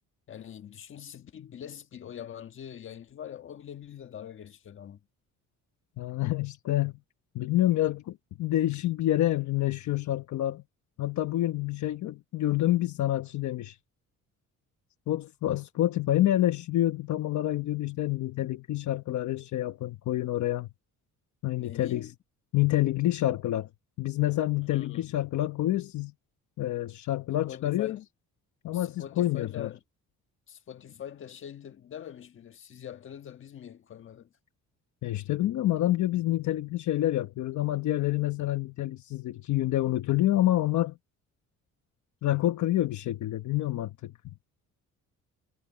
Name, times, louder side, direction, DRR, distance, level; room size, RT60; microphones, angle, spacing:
voice 1, 0.3-5.0 21.5-22.1 24.7-25.1 27.5-28.0 28.7-29.8 30.5-34.3, left 9 dB, 40° left, 1.5 m, -43 dB
voice 2, 6.0-6.9 7.3-10.6 11.0-13.8 15.1-20.7 21.4-22.1 22.5-23.7 24.0-26.1 26.6-28.0 28.6-29.7 35.0-40.9 42.2-44.1, left 14 dB, 65° left, 1.1 m, -27 dB
cardioid pair, 175°, 31 cm